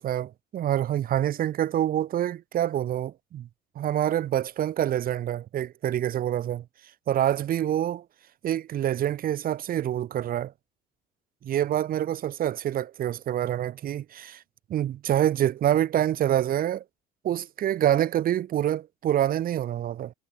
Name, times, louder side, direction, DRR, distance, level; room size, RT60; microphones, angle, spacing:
voice 1, 0.0-3.5 3.8-6.6 7.1-8.0 8.4-10.5 11.4-14.4 14.7-16.8 17.2-20.1, right 11 dB, 60° right, 2.2 m, -26 dB
cardioid pair, 110°, 17 cm